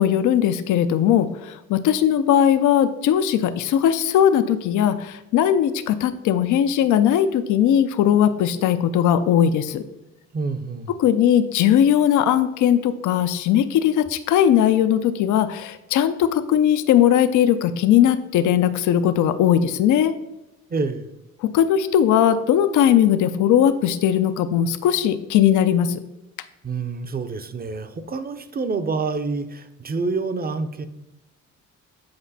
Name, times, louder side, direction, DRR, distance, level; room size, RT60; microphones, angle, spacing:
voice 1, 0.0-9.8 11.0-20.1 21.4-26.0, left 10 dB, 80° left, 11 dB, 0.6 m, -19 dB
voice 2, 10.3-10.9 20.7-21.1 26.6-30.9, right 4 dB, 30° right, 10 dB, 0.7 m, -27 dB
7.8 x 5.0 x 4.1 m, 0.95 s
cardioid pair, 90°, 30 cm